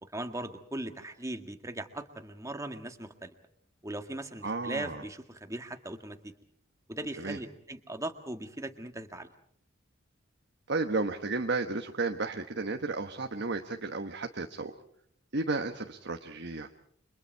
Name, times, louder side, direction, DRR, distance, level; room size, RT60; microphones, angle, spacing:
voice 1, 0.0-3.3 3.8-6.3 6.9-9.3, right 1 dB, 15° right, 6 dB, 1.8 m, -39 dB
voice 2, 4.4-5.0 7.2-7.4 10.7-14.7 15.3-16.7, right 3 dB, 60° right, 4 dB, 1.3 m, -33 dB
30.0 x 25.5 x 4.6 m, 0.64 s
head